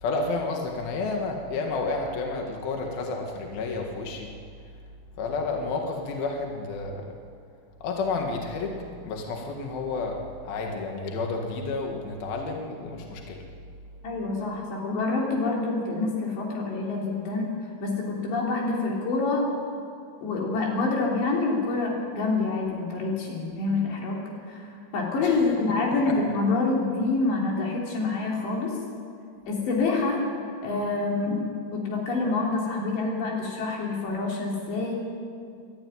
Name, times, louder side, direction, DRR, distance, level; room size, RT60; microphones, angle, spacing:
voice 1, 0.0-4.3 5.2-7.1 7.8-10.2 10.4-13.4 25.2-25.3, left 3 dB, 65° left, 1 dB, 3.4 m, -30 dB
voice 2, 14.0-17.5 17.8-19.5 20.2-28.8 29.5-30.3 30.6-34.9, left 3 dB, 85° left, -2 dB, 5.8 m, -27 dB
25.5 x 12.5 x 9.7 m, 2.3 s
omnidirectional pair, 4.9 m